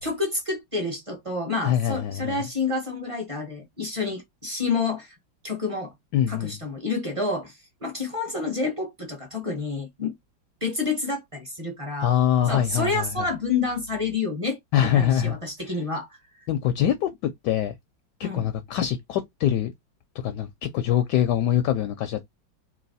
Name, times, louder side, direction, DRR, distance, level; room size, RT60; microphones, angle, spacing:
voice 1, 0.0-5.2 5.4-5.9 6.3-7.5 7.8-10.1 10.6-12.1 12.5-16.1 18.2-18.5, left 3 dB, 25° right, 0.8 m, -29 dB
voice 2, 1.6-2.4 6.1-6.6 12.0-13.3 14.7-15.4 15.6-15.7 16.5-17.7 18.2-19.7 20.2-22.2, left 10 dB, 75° left, 1.1 m, -24 dB
3.1 x 2.9 x 4.1 m
omnidirectional pair, 2.0 m